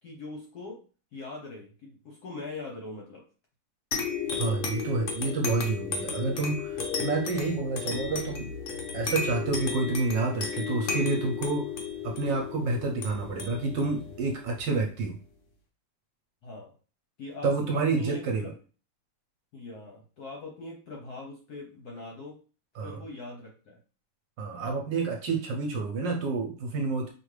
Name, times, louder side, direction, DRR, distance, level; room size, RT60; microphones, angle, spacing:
voice 1, 0.0-0.8 1.1-3.2 16.4-16.7 17.2-17.5 17.9-18.5 19.5-22.4 22.8-23.8, left 2 dB, 60° left, -1 dB, 1.0 m, -41 dB
sound 1, 3.9-15.0, left 5 dB, 80° left, 0.6 m, -34 dB
voice 2, 4.4-8.5 8.9-11.7 12.0-15.2 17.4-18.5 22.7-23.0 24.4-27.1, right 3 dB, 65° right, 2 dB, 1.3 m, -29 dB
5.1 x 2.5 x 3.2 m, 0.37 s
omnidirectional pair, 2.4 m